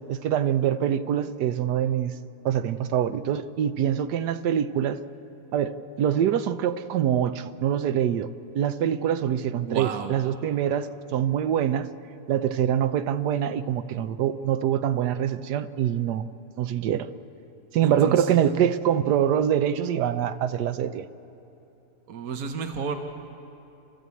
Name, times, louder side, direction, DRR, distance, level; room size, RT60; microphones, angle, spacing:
voice 1, 0.1-2.1 2.4-5.0 5.5-8.3 8.5-11.9 12.3-16.3 16.6-17.1 17.7-21.0, right 9 dB, 90° right, 1.3 m, -24 dB
voice 2, 9.6-10.1 17.8-18.7 22.1-23.0, right 6 dB, 65° right, 1.4 m, -32 dB
29.0 x 12.5 x 8.4 m
omnidirectional pair, 1.7 m